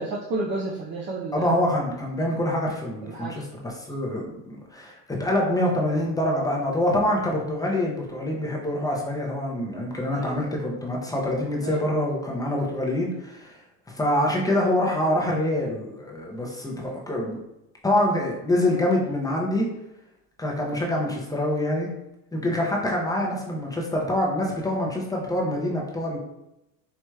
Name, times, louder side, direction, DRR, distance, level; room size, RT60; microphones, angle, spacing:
voice 1, 0.0-1.5 3.0-3.4 10.1-10.6 11.6-11.8, right 2 dB, 30° right, -3 dB, 0.5 m, -32 dB
voice 2, 1.3-13.5 13.9-17.4 17.8-19.7 20.4-21.9 22.3-26.2, left 1 dB, 10° left, -2 dB, 0.6 m, -25 dB
4.6 x 2.9 x 2.3 m, 0.88 s
supercardioid pair, 115°, 37 cm